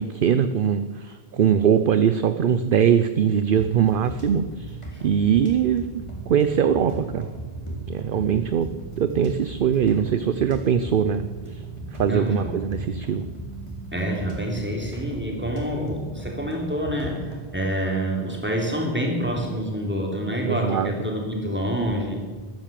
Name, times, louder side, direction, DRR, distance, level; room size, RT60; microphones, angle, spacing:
voice 1, 0.0-7.3 7.9-8.7 9.0-11.2 11.5-11.6 12.0-13.2 20.4-20.9, right 8 dB, 60° right, 11 dB, 0.8 m, -22 dB
sound 1, 3.5-17.4, right 2 dB, 25° left, 3.5 m, -37 dB
voice 2, 12.0-12.5 13.9-22.1, equal, 10° right, 0 dB, 3.2 m, -27 dB
14.0 x 12.0 x 7.6 m, 1.4 s
omnidirectional pair, 1.1 m